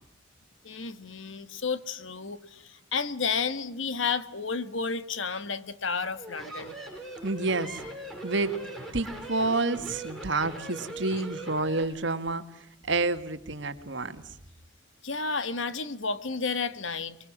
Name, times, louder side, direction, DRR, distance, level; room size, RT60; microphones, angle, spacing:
voice 1, 0.6-6.8 11.1-11.2 15.0-17.2, left 5 dB, 70° left, 13 dB, 1.5 m, -32 dB
Strange voice, 6.1-11.8, right 2 dB, ahead, 6.2 m, -40 dB
voice 2, 7.2-7.8 8.2-8.5 8.9-12.4 12.8-14.2, right 3 dB, 60° right, 9 dB, 1.9 m, -29 dB
24.5 x 23.5 x 7.6 m, 0.83 s
head